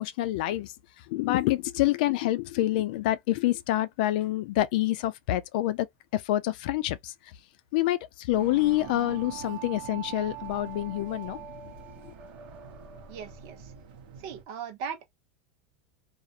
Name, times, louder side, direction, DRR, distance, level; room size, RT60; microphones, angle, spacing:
voice 1, 0.0-5.9 6.1-7.3 7.7-11.4 12.0-12.1, left 15 dB, 65° left, 0.4 m, -27 dB
sound 1, 8.3-14.4, right 6 dB, 80° right, 0.9 m, -46 dB
sound 2, 8.4-13.5, right 11 dB, 30° right, 0.5 m, -44 dB
voice 2, 13.1-13.7 14.2-15.1, right 7 dB, 55° right, 0.8 m, -38 dB
2.4 x 2.0 x 2.8 m
supercardioid pair, 160°, 5 cm